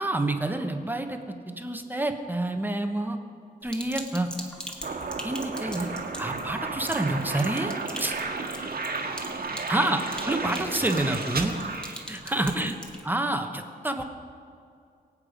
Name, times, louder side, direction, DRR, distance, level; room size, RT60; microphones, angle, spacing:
voice 1, 0.0-3.2 3.6-4.3 5.2-5.9 6.2-7.7 8.0-8.1 9.7-11.6 12.1-12.8 13.0-14.0, right 1 dB, 10° right, 5 dB, 1.1 m, -28 dB
Sink (filling or washing), 3.7-13.0, equal, 5° left, 1.6 m, -42 dB
sound 1, 4.8-12.6, right 4 dB, 65° right, 1.6 m, -33 dB
voice 2, 7.9-11.0 12.4-13.2, left 4 dB, 75° left, 5 dB, 1.3 m, -50 dB
23.0 x 8.4 x 5.1 m, 2.4 s
wide cardioid pair, 120°, 17 cm